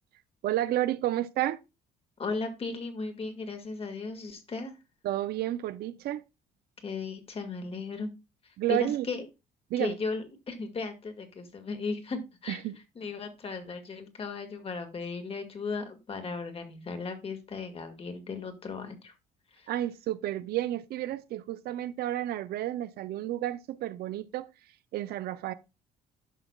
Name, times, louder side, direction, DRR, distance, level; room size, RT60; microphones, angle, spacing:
voice 1, 0.4-1.6 5.0-6.2 8.6-9.1 9.7-10.0 12.5-12.8 19.7-24.5 24.9-25.5, right 13 dB, 70° right, 0.6 m, -31 dB
voice 2, 2.2-4.7 6.8-8.1 8.4-9.3 9.8-12.6 13.0-19.1 19.5-19.7, left 4 dB, 35° left, 1.8 m, -36 dB
11.0 x 5.8 x 2.3 m
cardioid pair, 110°, 17 cm